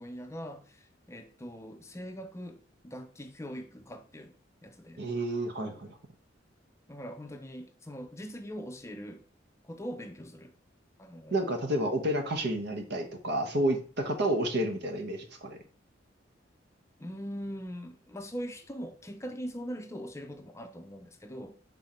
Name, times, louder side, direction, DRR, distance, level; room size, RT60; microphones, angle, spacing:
voice 1, 0.0-4.3 4.6-5.0 6.9-9.2 9.6-10.5 11.0-11.5 17.0-21.5, equal, 15° left, 0.5 m, -41 dB
voice 2, 5.0-6.0 11.3-15.6, right 1 dB, 60° right, 1.1 m, -30 dB
5.6 x 3.9 x 4.3 m
head